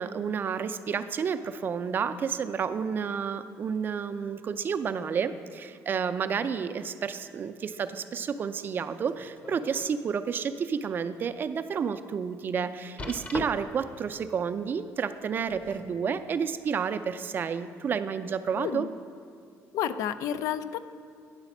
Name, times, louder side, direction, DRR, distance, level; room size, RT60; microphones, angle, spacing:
voice 1, 0.0-18.9, right 6 dB, 35° right, 10 dB, 0.4 m, -30 dB
sound 1, 9.1-9.9 10.4-10.5 11.1-11.2 13.0-13.9 15.2-16.0 16.9-17.0, left 2 dB, 25° left, 0.6 m, -39 dB
voice 2, 18.6-18.9 19.7-20.8, left 9 dB, 75° left, 13 dB, 0.4 m, -30 dB
9.7 x 4.1 x 7.1 m, 2.4 s
cardioid pair, 125°, 6 cm